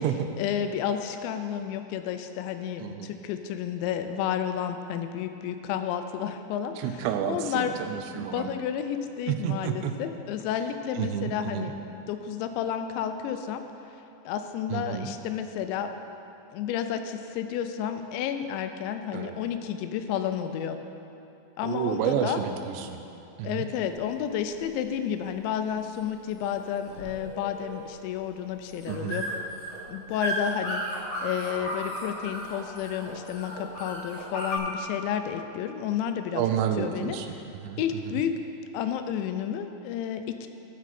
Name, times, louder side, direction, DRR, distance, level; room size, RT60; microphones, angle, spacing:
voice 1, 0.4-7.7 8.1-13.6 14.3-15.9 16.5-20.8 21.6-22.4 23.4-29.2 29.9-30.8 31.2-36.4 36.8-37.2 37.8-38.4 38.7-40.5, left 9 dB, 85° left, 8 dB, 2.9 m, -31 dB
voice 2, 2.8-3.1 6.8-8.5 9.3-9.9 11.0-11.7 14.7-15.1 19.1-19.3 21.6-23.0 23.4-23.7 28.9-29.2 36.4-37.4 37.6-37.8 38.1-38.2, right 9 dB, 85° right, 6 dB, 2.8 m, -30 dB
sound 1, 23.9-34.6, equal, 40° left, 1.7 m, -36 dB
14.0 x 6.2 x 4.3 m, 3.0 s
omnidirectional pair, 5.1 m